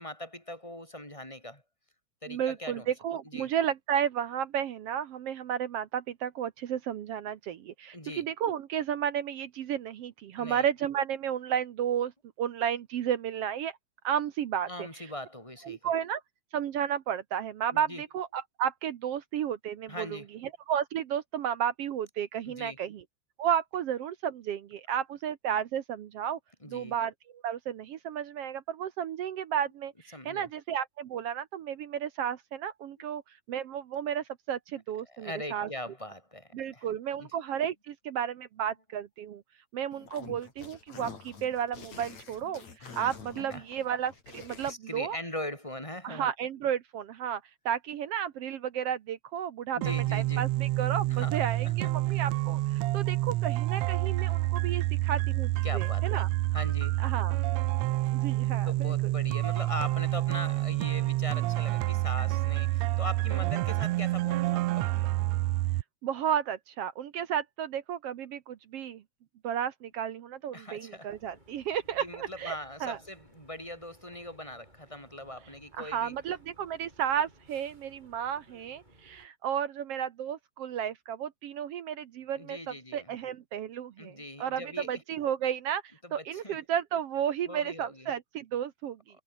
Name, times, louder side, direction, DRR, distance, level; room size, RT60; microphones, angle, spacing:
voice 1, 0.0-1.6 2.2-2.9 3.2-3.5 7.9-8.3 10.4-10.7 14.7-15.9 17.7-18.0 19.9-20.3 22.4-22.8 26.6-26.9 30.1-30.5 33.0-33.1 34.7-34.8 35.1-36.9 37.2-37.3 43.5-43.6 44.7-46.3 49.7-50.4 51.1-51.4 51.6-52.2 55.6-56.2 56.5-57.0 58.4-65.1 70.5-71.1 72.0-76.1 82.3-83.1 84.0-85.0 86.0-86.6 87.5-88.1 89.1-89.2, left 1 dB, 10° left, 5.2 m, -41 dB
voice 2, 2.3-12.1 12.4-13.8 14.0-15.1 15.6-16.2 16.5-23.0 23.4-26.4 26.7-33.2 33.5-35.7 36.5-39.4 39.7-45.2 46.0-49.8 50.1-56.3 57.0-57.4 58.1-59.1 66.0-69.0 69.4-72.5 72.8-73.0 75.8-85.8 86.1-89.0, right 9 dB, 65° right, 1.5 m, -33 dB
sound 1, 39.9-44.7, left 5 dB, 55° left, 5.6 m, -47 dB
sound 2, 49.8-65.8, right 17 dB, 85° right, 1.5 m, -28 dB
sound 3, 71.1-79.3, right 1 dB, 10° right, 7.8 m, -59 dB
omnidirectional pair, 3.9 m